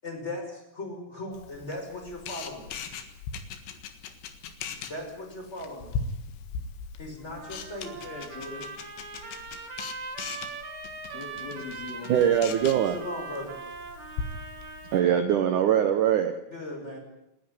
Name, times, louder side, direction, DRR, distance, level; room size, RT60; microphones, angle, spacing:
voice 1, 0.0-2.7 4.8-5.9 7.0-8.2 12.9-13.6 16.5-17.0, left 1 dB, 15° left, 1 dB, 5.7 m, -38 dB
Camera, 1.3-15.0, left 5 dB, 90° left, 3.9 m, -40 dB
Trumpet, 7.3-15.2, right 4 dB, 50° right, 3.4 m, -41 dB
voice 2, 8.0-8.7 11.1-12.8, left 4 dB, 70° left, 2 dB, 5.3 m, -41 dB
voice 3, 12.1-13.0 14.9-16.3, right 9 dB, 65° right, 7 dB, 2.0 m, -22 dB
28.5 x 10.5 x 9.8 m, 0.87 s
omnidirectional pair, 5.0 m